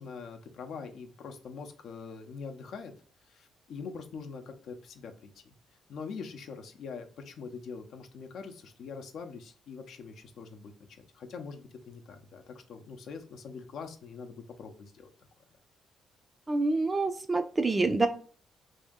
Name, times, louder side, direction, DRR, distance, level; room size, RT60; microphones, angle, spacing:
voice 1, 0.0-2.9 3.3-5.5 5.9-15.1, left 5 dB, 70° left, 6 dB, 0.6 m, -43 dB
voice 2, 16.5-18.1, right 3 dB, 25° right, 6 dB, 0.3 m, -27 dB
2.8 x 2.6 x 3.5 m, 0.44 s
cardioid pair, 90°, 0 cm